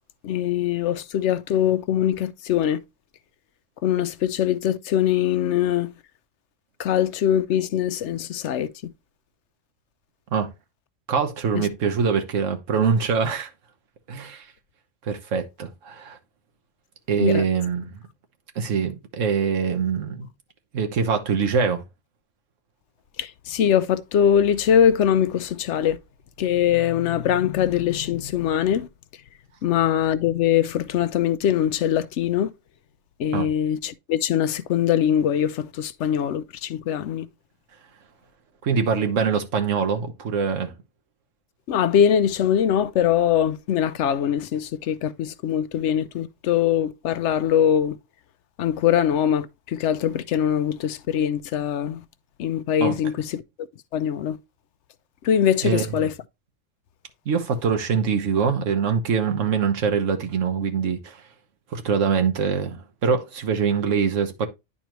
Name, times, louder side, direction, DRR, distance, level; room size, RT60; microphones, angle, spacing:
voice 1, 0.2-2.8 3.8-5.9 6.8-8.7 11.5-11.7 17.2-17.4 23.2-26.0 26.4-28.9 29.6-32.5 33.2-37.3 41.7-48.0 48.6-52.0 52.4-53.4 53.9-54.4 55.2-56.1, left 9 dB, 70° left, 0.9 m, -22 dB
voice 2, 11.1-13.5 14.1-14.4 15.1-16.2 17.1-18.0 18.5-20.3 20.7-21.8 33.3-33.5 38.6-40.7 52.8-53.0 55.6-55.8 57.3-61.2 61.7-64.5, right 6 dB, 80° right, 1.4 m, -23 dB
10.0 x 4.2 x 3.0 m
omnidirectional pair, 1.3 m